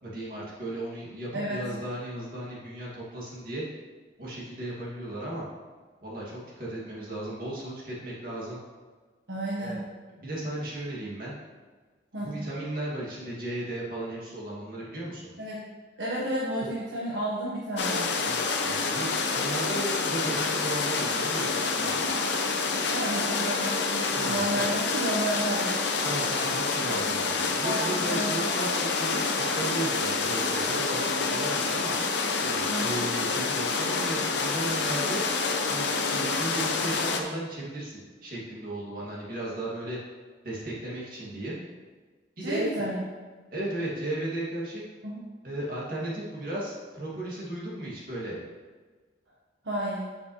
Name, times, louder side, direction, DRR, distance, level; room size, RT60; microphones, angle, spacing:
voice 1, 0.0-3.6 4.2-5.4 6.0-8.6 9.6-9.8 10.2-11.4 12.2-15.3 16.6-16.7 18.2-22.0 24.1-24.6 26.0-31.9 32.4-35.2 35.7-40.0 40.4-41.6 42.4-42.7 43.5-44.8 45.4-48.4, right 1 dB, 50° right, -5 dB, 2.3 m, -35 dB
voice 2, 1.3-1.6 9.3-9.8 12.1-12.4 15.4-15.6 16.0-18.1 22.9-25.8 27.6-28.4 32.7-33.0 42.4-43.0 45.0-45.2 49.6-50.1, right 1 dB, 70° right, -6 dB, 1.3 m, -31 dB
sound 1, 17.8-37.2, left 4 dB, 65° left, 0.8 m, -28 dB
8.6 x 7.2 x 3.2 m, 1.4 s
head